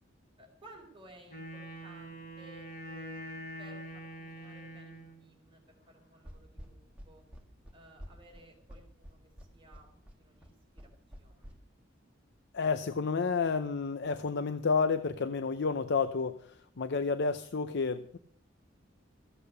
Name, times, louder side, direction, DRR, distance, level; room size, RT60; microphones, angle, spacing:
voice 1, 0.4-3.3 3.6-6.8 7.1-7.2 7.7-9.2 9.5-10.9 11.2-11.6, right 1 dB, 25° right, 1 dB, 3.7 m, -57 dB
Wind instrument woodwind instrument, 1.3-5.3, right 1 dB, 40° left, 6.4 m, -44 dB
sound 1, 6.3-11.5, equal, 5° right, 2.0 m, -49 dB
voice 2, 12.5-18.2, left 4 dB, 60° left, 11 dB, 0.6 m, -30 dB
15.0 x 8.6 x 6.7 m, 0.63 s
head